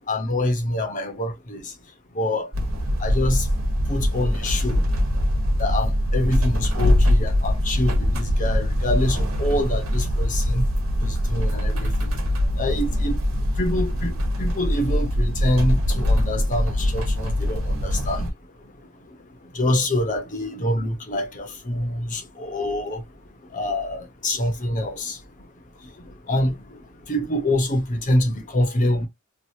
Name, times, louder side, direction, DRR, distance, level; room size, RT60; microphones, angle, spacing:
voice 1, 0.1-1.7 2.1-2.5 3.0-3.4 3.9-4.8 5.6-10.6 11.0-12.1 12.6-13.2 13.6-14.1 14.4-18.3 19.5-23.0 23.5-25.2 26.3-26.5 27.1-29.1, left 1 dB, 35° left, 0.9 m, -25 dB
sound 1, 2.5-18.3, equal, 70° right, 1.2 m, -22 dB
3.1 x 2.6 x 2.8 m
head